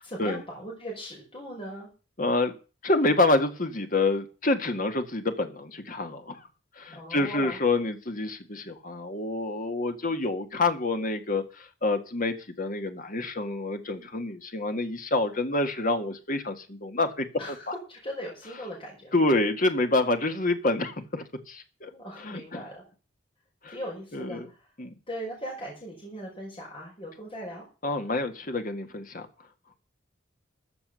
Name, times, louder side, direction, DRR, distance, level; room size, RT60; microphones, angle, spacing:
voice 1, 0.0-1.9 6.9-7.6 17.4-19.2 21.9-22.8 23.7-24.7 25.1-27.7, equal, 30° left, -3 dB, 5.4 m, -39 dB
voice 2, 2.2-2.5 2.8-6.4 6.8-17.3 19.1-21.9 22.2-22.6 23.6-23.7 24.1-24.5 24.8-24.9 27.8-29.3, left 2 dB, 45° left, 7 dB, 1.8 m, -27 dB
14.0 x 7.0 x 6.9 m, 0.34 s
head